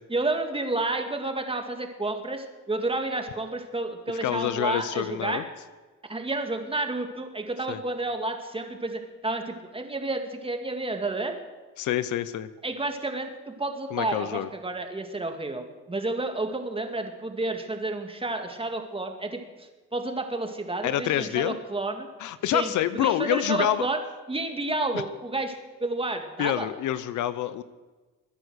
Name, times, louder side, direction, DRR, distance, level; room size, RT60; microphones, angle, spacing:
voice 1, 0.1-5.4 6.1-11.4 12.6-22.1 22.5-24.0 24.3-26.7, right 2 dB, 20° right, 5 dB, 2.2 m, -30 dB
voice 2, 4.2-5.4 7.7-7.8 11.8-12.5 13.9-14.5 20.8-21.6 22.2-23.8 24.9-25.0 26.4-27.6, left 12 dB, 80° left, 15 dB, 0.8 m, -27 dB
22.0 x 9.8 x 6.4 m, 1.3 s
cardioid pair, 90°, 30 cm